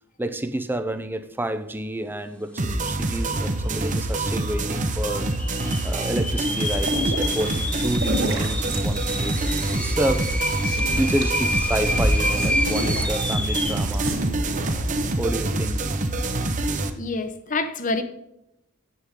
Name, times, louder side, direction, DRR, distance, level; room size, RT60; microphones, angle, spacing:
voice 1, 0.2-5.3 5.8-10.4 10.9-14.1 15.2-15.8, right 1 dB, 10° right, 0.5 m, -29 dB
sound 1, 2.6-16.9, right 2 dB, 35° right, 0.8 m, -26 dB
sound 2, 3.0-3.1 3.3-3.9 4.4-4.5 5.2-13.9, left 1 dB, 5° left, 1.3 m, -29 dB
sound 3, 6.7-15.2, equal, 60° right, 2.9 m, -30 dB
voice 2, 17.0-18.0, left 3 dB, 35° left, 0.9 m, -27 dB
9.8 x 7.8 x 3.7 m
head